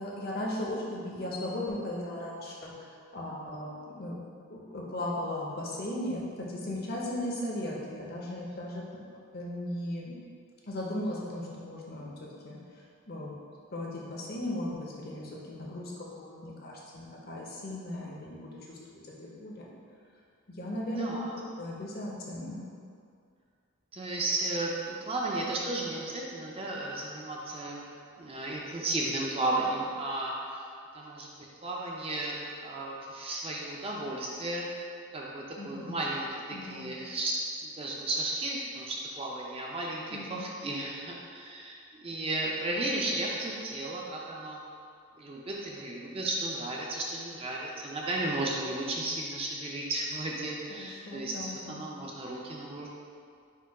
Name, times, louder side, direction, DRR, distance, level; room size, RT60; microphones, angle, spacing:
voice 1, 0.0-2.7 3.1-4.2 4.5-8.8 9.3-10.1 10.7-12.1 12.4-12.6 13.1-13.4 13.7-19.7 20.5-21.1 21.6-22.7 35.6-36.0 36.5-36.9 40.1-40.4 50.8-51.8, left 1 dB, 45° left, -3 dB, 0.6 m, -37 dB
voice 2, 21.0-21.3 23.9-27.8 28.2-30.7 30.9-31.3 31.6-37.3 37.6-44.6 45.2-52.9, right 2 dB, 25° right, -3 dB, 0.4 m, -34 dB
4.4 x 2.2 x 4.6 m, 2.3 s
head